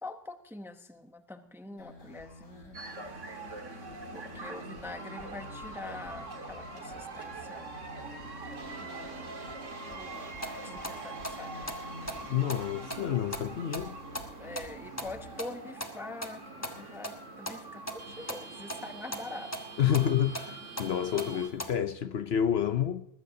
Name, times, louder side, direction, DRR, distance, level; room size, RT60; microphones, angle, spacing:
voice 1, 0.0-2.8 4.1-7.7 8.8-9.4 9.9-11.5 14.4-19.5, left 2 dB, ahead, 0.7 m, -45 dB
sound 1, 1.8-15.5, left 1 dB, 80° left, 3.5 m, -49 dB
sound 2, 2.7-21.5, right 3 dB, 80° right, 2.1 m, -44 dB
sound 3, 10.1-21.7, equal, 15° left, 1.3 m, -42 dB
voice 2, 12.3-14.0 19.8-23.1, left 9 dB, 60° left, 0.9 m, -29 dB
21.0 x 15.0 x 2.7 m
omnidirectional pair, 1.3 m